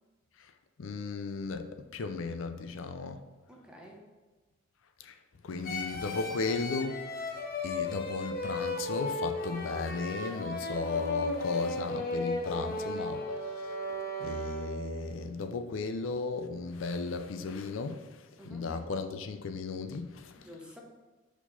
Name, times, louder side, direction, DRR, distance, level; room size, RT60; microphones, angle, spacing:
voice 1, 0.8-3.2 5.0-5.2 5.4-13.8 14.2-20.5, left 4 dB, 80° left, 8 dB, 0.5 m, -36 dB
voice 2, 3.5-4.1 18.4-18.7 20.4-20.8, left 1 dB, 5° right, -1 dB, 0.9 m, -49 dB
sound 1, 5.6-15.0, left 2 dB, 50° left, 0.8 m, -35 dB
4.6 x 4.5 x 5.5 m, 1.3 s
head